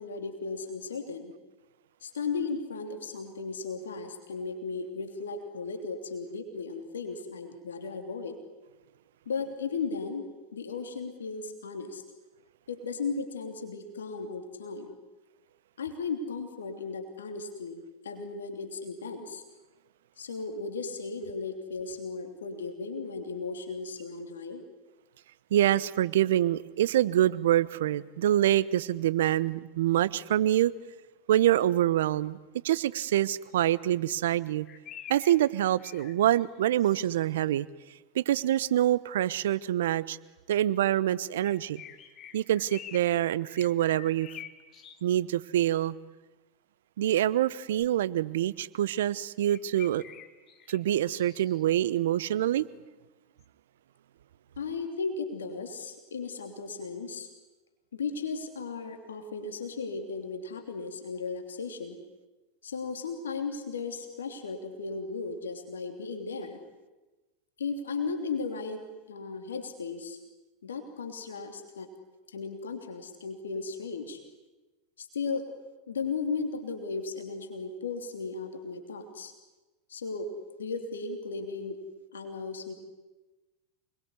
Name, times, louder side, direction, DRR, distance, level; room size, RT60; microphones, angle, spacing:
voice 1, 0.0-1.3 2.0-8.4 9.2-12.0 12.7-14.9 15.8-19.4 20.2-24.6 54.6-57.3 57.9-62.0 62.6-66.6 67.6-70.2 70.6-71.9 72.3-74.2 75.0-75.5 75.9-79.3 79.9-80.3 80.6-81.8 82.1-82.7, left 4 dB, 85° left, 6 dB, 3.1 m, -36 dB
voice 2, 25.5-30.7 31.3-32.4 32.6-34.7 35.1-37.7 38.1-40.2 40.5-41.8 42.3-44.3 45.0-45.9 47.0-50.0 50.7-52.7, right 12 dB, 75° right, 18 dB, 0.9 m, -26 dB
sound 1, 34.4-37.5 41.4-43.2 43.5-45.0 47.8-47.9 49.5-51.9 53.4-53.5, left 10 dB, 40° left, 2.8 m, -48 dB
28.0 x 21.5 x 9.7 m, 1.2 s
hypercardioid pair, 90°, 0 cm